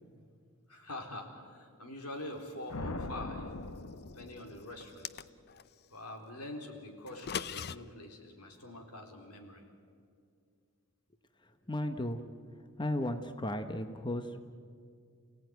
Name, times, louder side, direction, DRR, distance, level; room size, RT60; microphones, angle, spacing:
voice 1, 0.7-3.5 4.1-5.2 5.9-9.6, left 1 dB, 90° left, 3 dB, 3.8 m, -45 dB
sound 1, 2.7-5.0, left 2 dB, 70° left, 1.1 m, -41 dB
sound 2, 4.8-5.7 7.1-7.8, left 8 dB, 45° left, 0.6 m, -39 dB
voice 2, 11.7-12.2 12.8-14.4, left 1 dB, 20° left, 8 dB, 0.9 m, -35 dB
29.0 x 17.5 x 9.4 m, 2.3 s
head